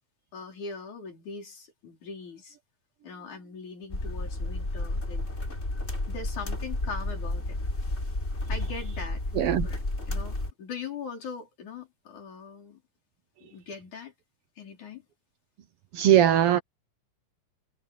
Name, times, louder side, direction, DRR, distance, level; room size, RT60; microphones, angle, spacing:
voice 1, 0.3-2.6 3.0-5.3 6.1-7.6 8.5-9.2 9.6-9.8 10.1-12.8 13.4-14.1 14.6-15.0, left 5 dB, 70° left, 6.1 m, -41 dB
sound 1, 3.9-10.5, left 2 dB, 20° left, 4.2 m, -32 dB
voice 2, 9.3-9.7 15.9-16.6, right 11 dB, 70° right, 1.4 m, -20 dB
omnidirectional pair, 3.6 m